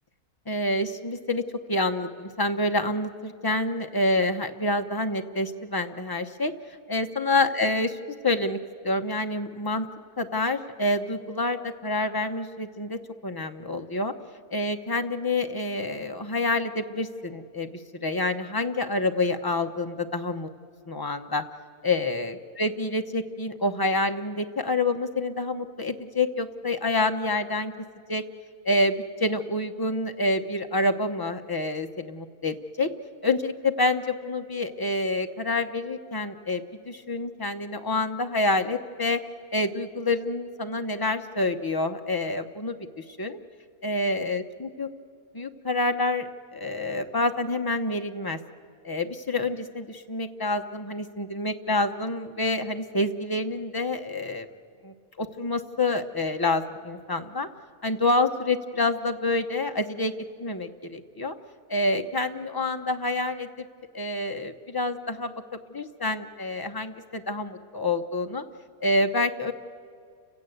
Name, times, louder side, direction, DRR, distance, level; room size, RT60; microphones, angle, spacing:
voice 1, 0.5-1.4 1.7-6.5 6.9-8.0 8.2-8.6 8.8-9.9 10.2-14.1 14.5-20.5 20.9-21.4 21.8-27.7 28.1-28.2 28.6-32.9 33.2-39.2 39.5-43.4 43.8-44.9 45.3-48.4 48.8-54.5 54.8-57.5 57.8-61.3 61.7-63.7 63.9-65.3 65.7-68.4 68.8-69.5, left 2 dB, 20° left, 6 dB, 0.8 m, -27 dB
30.0 x 17.0 x 8.0 m, 2.2 s
omnidirectional pair, 1.6 m